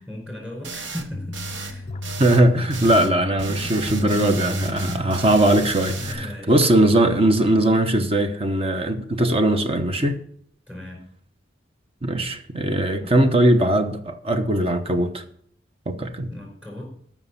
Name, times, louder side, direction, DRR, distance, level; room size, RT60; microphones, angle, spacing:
voice 1, 0.0-1.9 3.9-5.1 6.0-6.6 10.7-11.0 12.9-13.1 16.3-16.9, left 1 dB, 5° right, 0 dB, 4.8 m, -37 dB
sound 1, 0.6-1.1 1.3-1.8 2.0-3.1 3.4-6.1, right 4 dB, 70° right, 1.3 m, -34 dB
sound 2, 1.1-6.3, left 2 dB, 35° left, 0.4 m, -34 dB
voice 2, 2.2-10.2 12.0-15.2 15.9-16.3, right 1 dB, 30° right, 8 dB, 0.9 m, -20 dB
13.5 x 6.1 x 5.7 m, 0.63 s
head